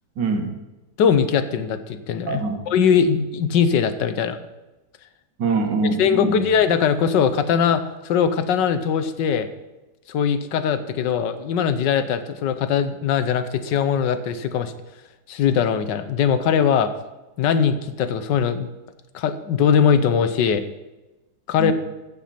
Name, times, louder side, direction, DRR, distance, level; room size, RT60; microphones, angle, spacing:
voice 1, 0.2-0.6 2.3-2.6 5.4-6.4 21.6-21.7, right 4 dB, 85° right, 4 dB, 2.2 m, -23 dB
voice 2, 1.0-4.4 6.0-9.5 10.1-14.7 15.3-16.9 17.4-18.7 19.1-20.6 21.5-21.7, left 7 dB, 90° left, 11 dB, 1.5 m, -21 dB
15.5 x 6.3 x 5.8 m, 1.1 s
omnidirectional pair, 1.9 m